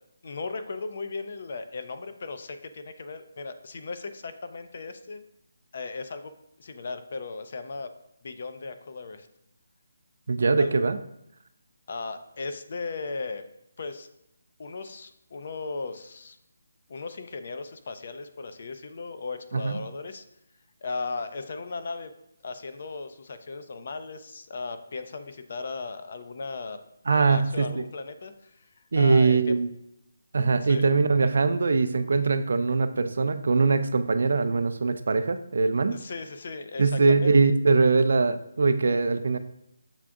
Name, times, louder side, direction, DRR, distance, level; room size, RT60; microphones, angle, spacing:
voice 1, 0.2-5.2 5.7-6.3 6.6-7.9 8.2-9.3 10.6-10.8 11.9-13.4 13.8-14.1 14.6-16.4 16.9-20.2 20.8-22.1 22.4-26.8 27.1-29.6 30.6-30.9 35.9-37.3, left 3 dB, 50° left, 8 dB, 0.4 m, -36 dB
voice 2, 10.3-11.0 19.5-19.8 27.1-27.8 28.9-29.7 30.3-36.0 36.8-39.4, right 4 dB, 65° right, 10 dB, 0.3 m, -22 dB
6.9 x 2.5 x 2.3 m, 0.81 s
figure-of-eight pair, 155°, 0 cm